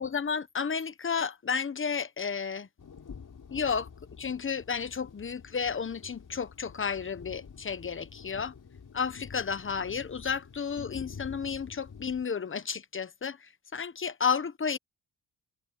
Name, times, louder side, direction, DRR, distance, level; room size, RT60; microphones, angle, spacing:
voice 1, 0.0-2.7 3.5-3.9 4.2-8.5 8.9-14.8, left 6 dB, 30° left, 1.1 m, -32 dB
sound 1, 2.8-12.2, left 6 dB, 45° left, 5.5 m, -48 dB
cardioid pair, 90°, 43 cm